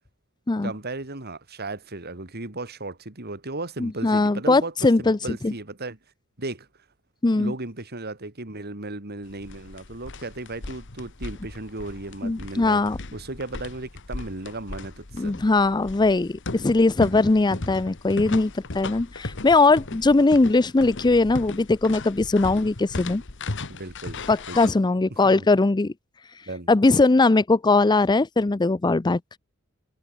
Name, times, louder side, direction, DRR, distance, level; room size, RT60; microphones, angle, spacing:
voice 1, 0.6-6.0 6.4-6.7 7.4-12.8 13.1-15.4 17.5-17.7 23.7-24.7 25.2-25.5 26.5-26.7, right 2 dB, 50° right, 3.0 m, -35 dB
voice 2, 3.8-5.2 5.4-5.5 7.2-7.5 12.2-13.0 15.2-23.2 24.3-25.9 26.7-29.4, left 3 dB, 20° left, 0.5 m, -20 dB
sound 1, 9.2-24.7, left 2 dB, 60° left, 1.6 m, -37 dB
head